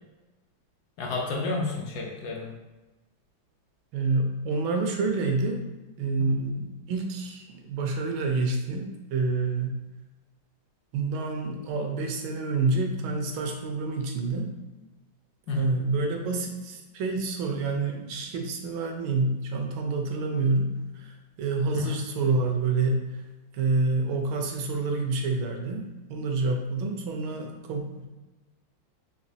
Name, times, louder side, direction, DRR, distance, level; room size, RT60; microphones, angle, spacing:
voice 1, 1.0-2.5 15.5-15.7 21.7-22.0, left 4 dB, 70° left, -1 dB, 1.0 m, -31 dB
voice 2, 3.9-5.7 6.0-9.8 10.9-14.5 15.5-23.1 23.5-28.1, right 3 dB, 85° right, 3 dB, 1.4 m, -28 dB
4.1 x 2.8 x 2.7 m, 1.1 s
omnidirectional pair, 2.2 m